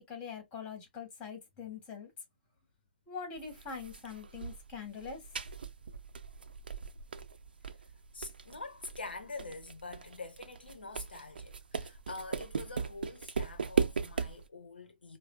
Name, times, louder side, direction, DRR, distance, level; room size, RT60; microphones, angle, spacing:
voice 1, 0.1-2.1 3.1-5.2, left 6 dB, 25° left, 2.2 m, -43 dB
sound 1, 3.4-14.5, right 5 dB, 70° right, 0.5 m, -38 dB
voice 2, 8.1-15.2, left 3 dB, 80° left, 0.8 m, -45 dB
4.7 x 2.2 x 2.4 m
figure-of-eight pair, 120°, 5 cm